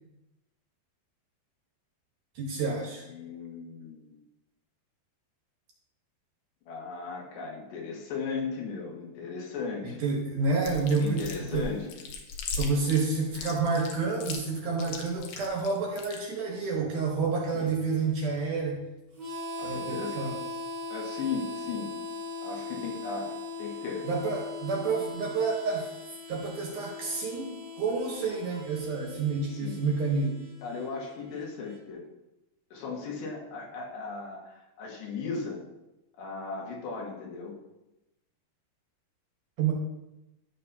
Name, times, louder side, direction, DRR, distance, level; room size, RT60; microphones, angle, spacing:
voice 1, 2.4-3.0 9.8-11.3 11.5-11.7 12.6-18.8 19.6-20.3 24.0-25.9 26.3-30.4 39.6-39.7, right 4 dB, 65° right, -1 dB, 2.2 m, -29 dB
voice 2, 3.1-4.2 6.7-10.0 11.0-12.0 17.5-17.7 19.6-20.3 20.9-21.9 22.4-24.1 29.5-29.8 30.6-32.1 32.7-35.6 36.2-37.6, left 4 dB, 90° left, -2 dB, 3.9 m, -37 dB
Chewing mastication, 10.6-16.2, left 4 dB, 70° left, 2.2 m, -38 dB
Harmonica, 19.1-31.8, left 3 dB, 45° right, 1.8 m, -40 dB
12.0 x 6.9 x 2.7 m, 0.94 s
omnidirectional pair, 4.7 m